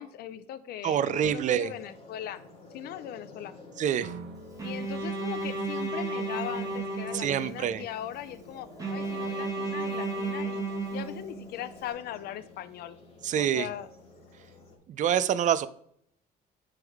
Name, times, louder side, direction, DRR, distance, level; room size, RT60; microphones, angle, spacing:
voice 1, 0.0-2.4 2.7-3.5 4.6-13.0 13.4-13.9, left 11 dB, 70° left, 0.5 m, -39 dB
voice 2, 0.8-1.7 3.8-4.1 7.1-7.9 13.2-13.7 14.9-15.7, right 9 dB, 45° right, 0.4 m, -26 dB
sound 1, 1.4-14.8, left 2 dB, 35° left, 1.9 m, -51 dB
sound 2, 4.0-6.9, right 5 dB, 75° right, 0.9 m, -47 dB
Bowed string instrument, 4.6-7.8 8.8-11.7, right 3 dB, 20° right, 1.4 m, -33 dB
9.4 x 3.4 x 3.5 m
cardioid pair, 110°, 17 cm